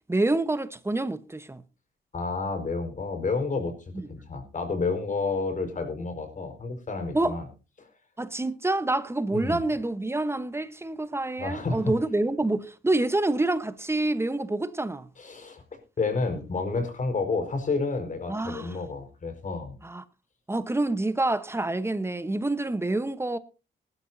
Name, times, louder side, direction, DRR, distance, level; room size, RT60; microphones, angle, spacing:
voice 1, 0.1-1.6 3.9-4.1 7.1-7.4 8.2-15.1 18.3-18.7 19.8-20.0 20.5-23.4, right 2 dB, 10° right, 1.1 m, -27 dB
voice 2, 2.1-3.7 4.1-7.5 7.8-7.9 9.3-9.7 11.4-11.9 15.2-15.6 16.0-19.8, left 3 dB, 40° left, 4.8 m, -30 dB
19.0 x 12.5 x 2.7 m
cardioid pair, 90°, 20 cm